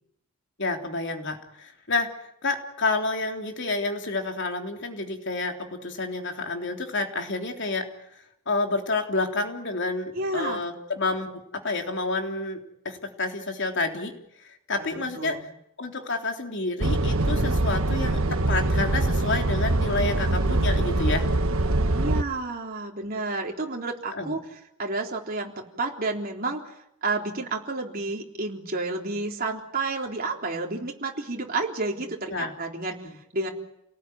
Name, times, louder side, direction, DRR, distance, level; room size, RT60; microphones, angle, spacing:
voice 1, 0.6-2.1 2.4-7.8 8.1-12.6 12.9-14.1 14.4-15.4 15.8-18.2 18.5-21.3 24.1-24.4 32.3-32.5 33.0-33.2, left 3 dB, 55° left, 4 dB, 3.5 m, -29 dB
voice 2, 10.1-10.6 14.8-15.5 21.9-24.4 24.8-33.0 33.3-33.5, right 3 dB, 40° right, 1 dB, 3.6 m, -30 dB
sound 1, 16.8-22.2, right 2 dB, 70° right, 1.4 m, -23 dB
29.0 x 19.0 x 9.5 m, 0.79 s
head